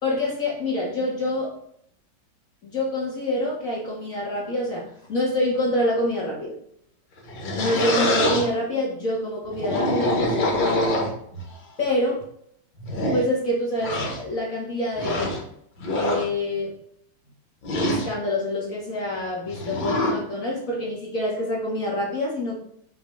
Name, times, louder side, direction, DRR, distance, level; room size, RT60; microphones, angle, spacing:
voice 1, 0.0-1.5 2.6-6.5 7.5-11.1 11.8-12.2 13.1-15.4 15.9-16.7 17.7-22.6, left 1 dB, 45° left, -4 dB, 2.3 m, -26 dB
sound 1, 7.2-8.5 9.5-11.4 12.2-12.3 12.8-13.2 13.8-14.2 14.9-15.4 15.8-16.3 17.6-18.1 19.5-20.2, left 1 dB, 80° left, 2.4 m, -24 dB
6.4 x 5.9 x 3.4 m, 0.69 s
omnidirectional pair, 2.1 m